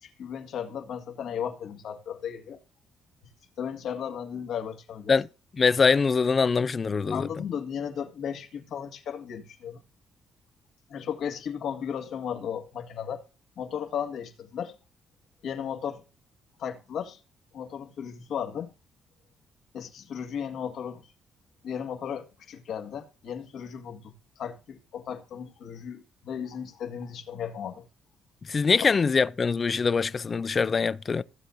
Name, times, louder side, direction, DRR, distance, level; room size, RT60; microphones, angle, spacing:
voice 1, 0.0-2.6 3.6-5.1 7.1-9.8 10.9-13.2 13.6-14.8 15.4-16.0 16.6-17.2 17.5-18.7 19.7-21.0 21.6-27.9 28.8-28.9, left 8 dB, 75° left, 1.8 m, -35 dB
voice 2, 5.5-7.3 28.5-31.2, left 5 dB, 35° left, 0.5 m, -23 dB
16.0 x 7.9 x 2.6 m
cardioid pair, 90°, 0 cm